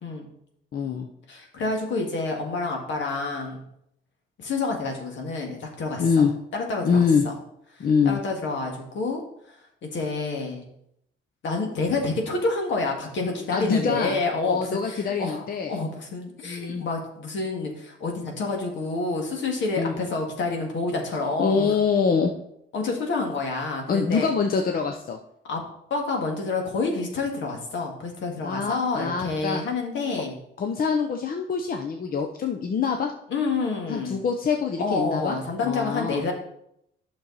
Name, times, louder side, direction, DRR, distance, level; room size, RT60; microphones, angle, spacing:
voice 1, 0.0-0.3 1.3-3.6 4.4-6.0 6.5-7.3 7.8-9.2 9.8-10.7 11.4-21.8 22.7-24.3 25.4-25.6 25.9-30.4 33.3-34.2 34.8-36.3, left 3 dB, 70° left, 1 dB, 2.0 m, -28 dB
voice 2, 0.7-1.1 6.0-6.3 6.8-7.2 7.8-8.2 13.5-14.2 14.5-15.8 16.4-16.9 19.8-19.9 21.4-22.3 23.9-25.2 28.4-29.6 30.6-33.1 33.9-35.4 35.6-36.2, left 5 dB, 45° left, 4 dB, 0.8 m, -24 dB
9.3 x 6.3 x 4.1 m, 0.76 s
cardioid pair, 90°, 20 cm